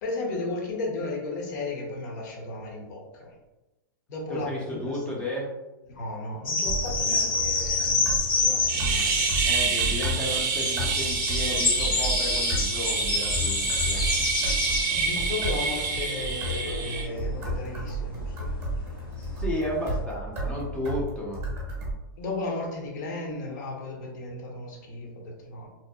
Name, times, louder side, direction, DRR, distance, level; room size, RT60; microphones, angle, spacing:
voice 1, 0.0-3.3 4.1-5.0 5.9-9.5 14.9-18.6 22.2-25.7, left 2 dB, 55° left, 0 dB, 0.8 m, -35 dB
voice 2, 4.3-5.5 7.1-7.3 8.7-9.1 9.4-14.1 19.2-21.4, left 1 dB, 10° left, -4 dB, 0.5 m, -33 dB
sound 1, 6.4-9.8 10.4-18.2 18.4-19.8, left 3 dB, 85° left, 0.7 m, -28 dB
sound 2, 6.6-21.9, right 1 dB, 20° right, 0.9 m, -33 dB
sound 3, 8.7-17.0, right 5 dB, 50° right, 0.5 m, -28 dB
2.7 x 2.2 x 2.2 m, 1.0 s
hypercardioid pair, 140°, 11 cm